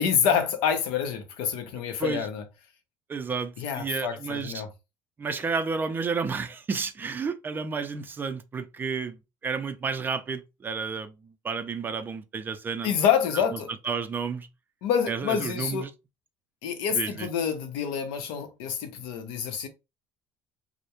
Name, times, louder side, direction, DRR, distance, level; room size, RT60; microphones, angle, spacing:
voice 1, 0.0-2.4 3.6-4.7 12.8-13.7 14.8-15.9 16.6-19.7, left 7 dB, 85° left, 0.6 m, -27 dB
voice 2, 3.1-4.6 5.2-12.9 13.8-14.5 15.1-15.9 16.9-17.3, right 5 dB, 25° right, 0.4 m, -31 dB
2.2 x 2.0 x 2.9 m
supercardioid pair, 100°, 8 cm